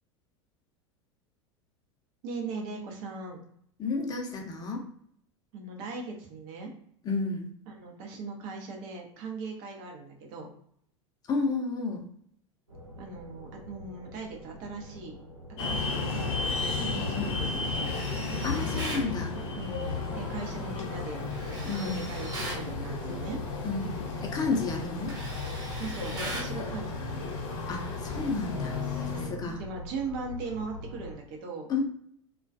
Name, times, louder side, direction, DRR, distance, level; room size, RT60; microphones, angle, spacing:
voice 1, 2.2-3.4 5.5-6.7 7.7-10.5 13.0-15.1 15.6-18.0 19.5-23.4 25.8-27.2 29.0-31.7, right 3 dB, 55° right, 1 dB, 0.7 m, -39 dB
voice 2, 3.8-4.8 7.0-7.5 11.3-12.0 17.1-17.4 18.4-19.4 21.6-21.9 23.6-23.9 24.2-25.1 27.7-28.8 29.1-29.6 31.7-31.8, left 4 dB, 25° left, 1 dB, 0.6 m, -31 dB
sound 1, 12.7-31.2, right 2 dB, 85° right, 0.9 m, -46 dB
sound 2, 15.6-29.3, left 4 dB, 55° left, 0.8 m, -33 dB
Tools, 17.8-19.1 21.3-22.7 24.2-24.4 24.7-26.6, right 1 dB, 25° right, 0.9 m, -39 dB
2.3 x 2.2 x 2.5 m, 0.67 s
figure-of-eight pair, 80°, 16 cm